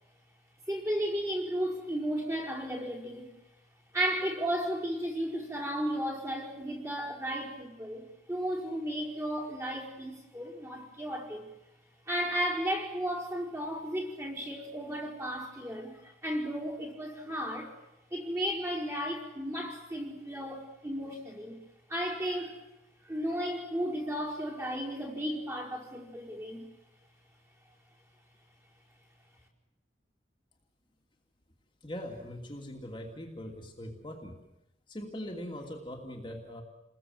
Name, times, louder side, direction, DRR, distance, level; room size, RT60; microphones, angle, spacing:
voice 1, 0.7-3.3 3.9-11.4 12.1-17.8 18.1-21.6 21.9-22.6 23.0-26.7, equal, 15° right, -1 dB, 5.1 m, -34 dB
voice 2, 31.8-34.4 34.9-36.6, equal, 25° left, 1 dB, 2.7 m, -41 dB
30.0 x 21.0 x 7.9 m, 0.89 s
head